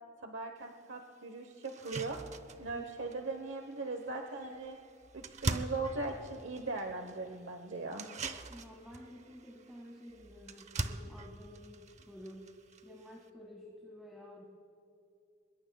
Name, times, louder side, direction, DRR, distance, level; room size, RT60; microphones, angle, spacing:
voice 1, 0.2-2.2 2.6-4.8 5.1-8.1, right 3 dB, 80° right, 4 dB, 1.0 m, -39 dB
sound 1, 0.6-0.7 1.2-1.3 1.6-13.3, right 2 dB, 35° right, 0.7 m, -43 dB
voice 2, 8.5-12.6 12.8-14.4, equal, ahead, -2 dB, 1.9 m, -51 dB
24.0 x 21.5 x 2.3 m, 2.7 s
head